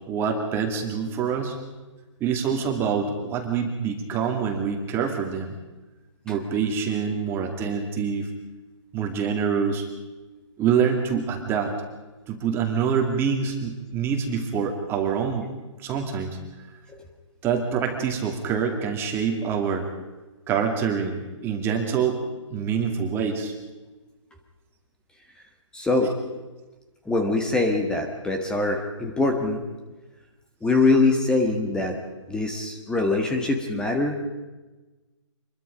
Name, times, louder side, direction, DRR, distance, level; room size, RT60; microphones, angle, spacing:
voice 1, 0.1-1.6 2.2-5.5 6.2-8.3 8.9-9.9 10.6-11.7 12.3-15.5 15.8-16.4 17.4-19.9 20.5-22.2 22.5-23.5, right 6 dB, 15° right, 3 dB, 2.4 m, -25 dB
voice 2, 25.7-26.1 27.0-29.6 30.6-32.0 32.3-34.2, left 3 dB, 5° left, 4 dB, 1.6 m, -23 dB
26.5 x 22.0 x 5.2 m, 1.2 s
hypercardioid pair, 155°, 16 cm